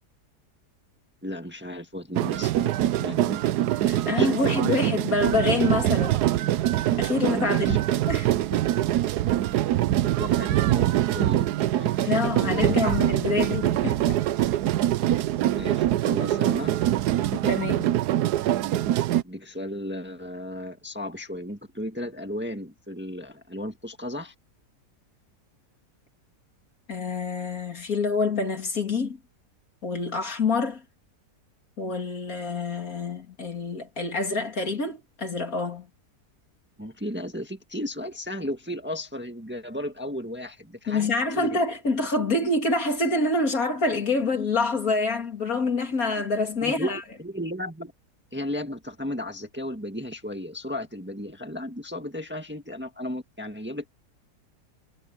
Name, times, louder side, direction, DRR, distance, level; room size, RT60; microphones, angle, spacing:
voice 1, 1.2-3.4 3.9-4.8 7.3-7.8 10.2-12.1 12.3-12.9 15.5-16.7 19.2-24.3 36.8-41.1 41.3-41.6 46.6-46.9 47.2-47.9 48.3-53.9, left 1 dB, 5° right, 1.6 m, -34 dB
sound 1, 2.1-19.2, right 13 dB, 80° right, 1.2 m, -24 dB
voice 2, 3.9-6.3 7.0-7.8 8.1-8.6 12.0-14.2 17.3-17.9 26.9-29.2 29.8-30.8 31.8-35.9 40.9-47.0, left 3 dB, 60° left, 3.1 m, -26 dB
omnidirectional pair, 1.7 m